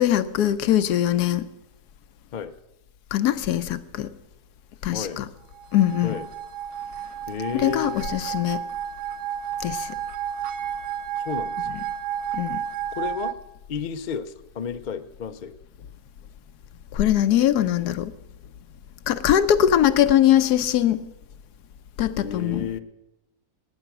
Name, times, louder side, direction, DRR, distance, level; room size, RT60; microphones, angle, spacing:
voice 1, 0.0-1.5 3.1-4.1 4.8-5.3 5.7-6.2 7.5-8.6 9.6-10.0 12.3-12.6 16.9-18.1 19.1-21.1 22.0-22.7, left 11 dB, 80° left, 1.2 m, -21 dB
voice 2, 4.9-5.2 6.0-6.3 7.3-8.1 11.2-11.7 13.0-13.3 13.7-15.5 22.1-22.8, left 7 dB, 60° left, 0.4 m, -32 dB
sound 1, 5.5-13.3, right 9 dB, 60° right, 1.0 m, -31 dB
18.0 x 8.9 x 6.0 m
omnidirectional pair, 1.7 m